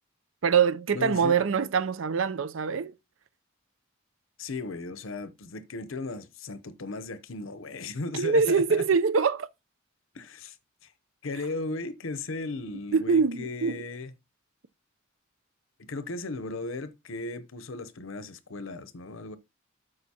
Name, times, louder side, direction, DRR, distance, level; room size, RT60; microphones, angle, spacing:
voice 1, 0.4-2.9 8.1-9.5 12.9-13.8, right 5 dB, 75° right, 0.6 m, -24 dB
voice 2, 0.9-1.5 4.4-8.8 10.1-10.6 10.8-10.9 11.2-14.1 15.9-19.4, left 3 dB, 80° left, 0.8 m, -36 dB
13.0 x 4.9 x 2.8 m
head